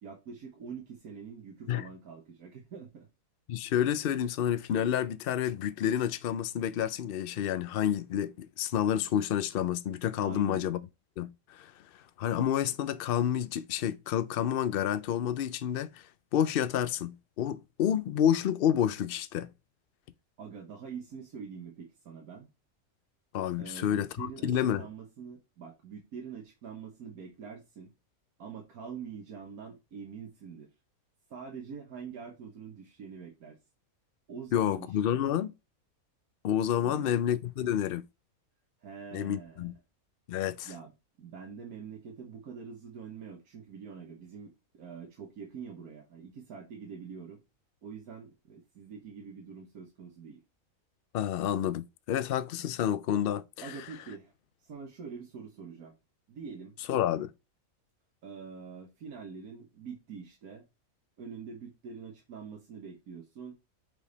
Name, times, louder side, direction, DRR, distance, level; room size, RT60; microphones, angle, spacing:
voice 1, 0.0-3.1 10.2-10.6 20.4-22.5 23.6-27.9 28.4-30.7 31.3-33.6 34.3-35.2 36.8-37.2 38.8-39.7 40.6-40.9 41.2-47.4 47.8-50.4 53.6-54.3 54.6-56.0 56.3-56.8 58.2-60.6 61.2-63.5, right 6 dB, 85° right, 1.7 m, -45 dB
voice 2, 3.5-10.8 11.2-11.7 12.2-16.0 16.3-19.5 23.3-24.8 34.5-35.5 36.4-38.1 39.1-39.7 40.3-40.7 51.1-53.7 56.9-57.3, left 10 dB, 60° left, 0.6 m, -29 dB
5.6 x 5.1 x 4.0 m
omnidirectional pair, 1.5 m